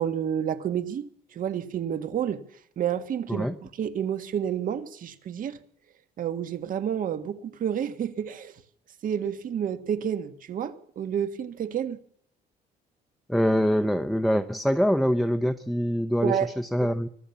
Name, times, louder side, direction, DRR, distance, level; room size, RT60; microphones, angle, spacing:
voice 1, 0.0-2.4 2.8-5.6 6.2-8.5 9.0-12.0 16.2-16.5, right 9 dB, 55° right, 1.7 m, -29 dB
voice 2, 13.3-17.1, equal, ahead, 0.9 m, -24 dB
24.0 x 15.5 x 7.2 m
cardioid pair, 110°, 17 cm